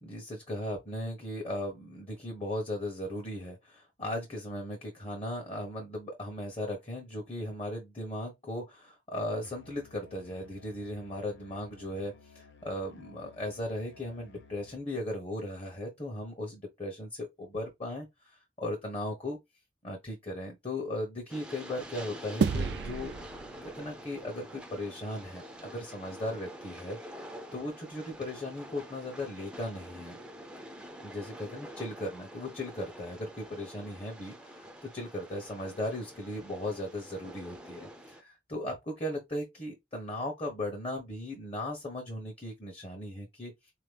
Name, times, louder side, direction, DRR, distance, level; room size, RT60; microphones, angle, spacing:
voice 1, 0.0-19.4 19.8-23.1 23.6-27.0 27.5-30.2 31.0-43.5, left 1 dB, 35° left, 1.0 m, -37 dB
Musical instrument, 9.4-14.9, left 4 dB, 80° left, 0.8 m, -56 dB
Train, 21.3-38.2, equal, 5° right, 0.5 m, -47 dB
sound 1, 22.4-25.0, right 5 dB, 65° right, 0.4 m, -33 dB
4.1 x 2.9 x 3.3 m
head